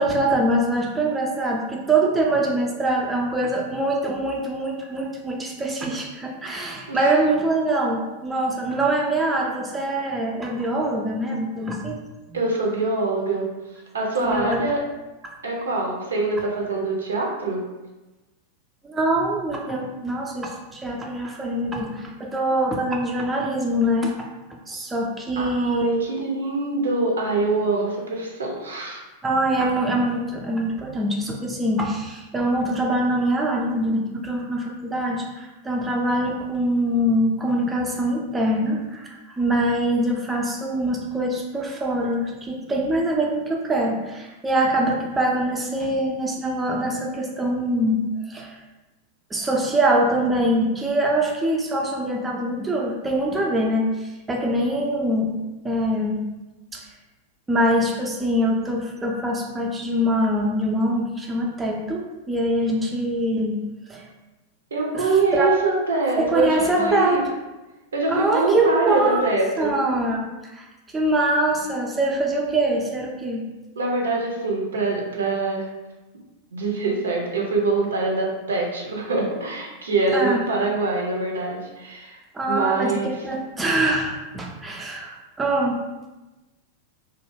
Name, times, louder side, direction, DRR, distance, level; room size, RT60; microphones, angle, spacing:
voice 1, 0.0-12.0 14.2-14.7 18.8-24.3 24.7-26.0 29.2-48.0 48.3-48.6 49.3-55.3 55.6-56.2 56.7-56.9 57.5-63.6 63.9-64.1 64.9-65.6 66.2-67.2 68.1-70.7 70.9-73.5 80.1-80.4 82.3-85.8, right 1 dB, 15° right, -1 dB, 0.3 m, -24 dB
voice 2, 12.3-13.5 13.9-14.8 15.4-17.6 25.4-29.0 64.7-67.2 67.9-69.7 73.8-75.7 76.5-82.2 82.5-83.2, right 3 dB, 70° right, -1 dB, 0.5 m, -24 dB
2.2 x 2.0 x 3.2 m, 1.1 s
figure-of-eight pair, 90°, 0 cm